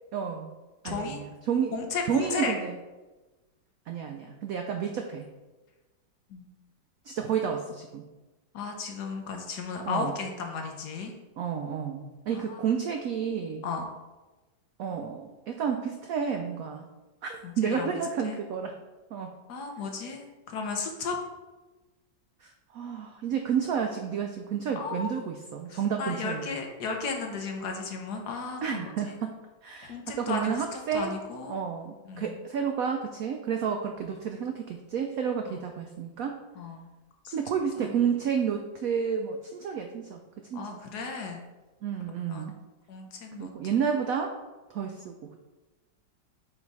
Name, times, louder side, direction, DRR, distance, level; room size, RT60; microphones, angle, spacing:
voice 1, 0.1-0.5 0.8-1.7 2.1-2.7 3.9-5.3 7.1-8.0 9.9-10.1 11.4-13.6 14.8-16.9 17.2-18.7 19.1-19.3 22.4-26.5 28.6-31.2 31.5-36.4 37.3-40.2 40.5-40.8 41.8-42.5 43.4-44.3 44.7-45.4, right 7 dB, 80° right, 4 dB, 0.7 m, -31 dB
voice 2, 0.8-1.2 1.7-2.5 6.3-6.4 8.5-11.1 12.3-12.6 13.6-13.9 17.4-17.9 18.2-18.4 19.5-21.2 24.7-25.1 25.7-29.2 29.8-31.6 32.0-32.4 35.5-35.6 36.6-36.8 37.2-37.3 37.8-38.0 40.5-41.4 42.3-42.5 42.9-43.5, left 4 dB, 65° left, 3 dB, 1.3 m, -34 dB
5.1 x 4.3 x 4.7 m, 1.2 s
omnidirectional pair, 2.1 m